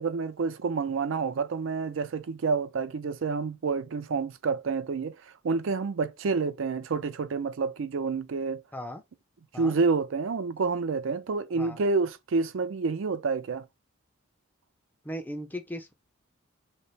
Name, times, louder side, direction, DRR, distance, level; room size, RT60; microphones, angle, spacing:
voice 1, 0.0-5.1 5.4-8.6 9.5-13.6, right 4 dB, 65° right, 0.4 m, -28 dB
voice 2, 8.7-9.0 9.5-9.8 11.6-11.8 15.0-15.9, equal, 10° left, 0.4 m, -37 dB
3.2 x 2.0 x 4.1 m
head